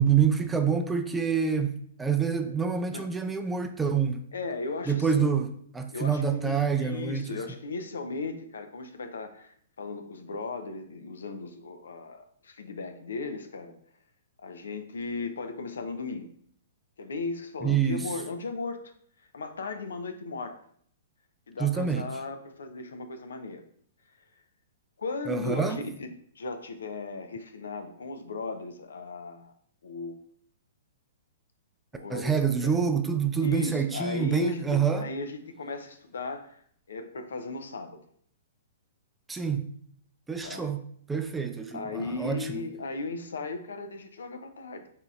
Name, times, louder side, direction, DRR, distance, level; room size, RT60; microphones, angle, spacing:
voice 1, 0.0-4.3 4.9-7.4 17.6-18.1 21.6-22.0 25.3-25.8 32.1-35.1 39.3-39.6 40.3-40.8 41.1-42.6, right 6 dB, 10° right, 0.4 m, -27 dB
voice 2, 4.3-5.3 5.9-13.7 14.4-16.3 17.0-18.8 19.3-20.6 21.5-23.6 25.0-26.1 26.4-29.5 29.8-30.2 31.9-32.8 33.4-36.6 36.9-38.0 40.4-40.7 41.7-44.9, left 3 dB, 75° left, 0.5 m, -36 dB
4.3 x 3.8 x 2.4 m
hypercardioid pair, 120°, 0 cm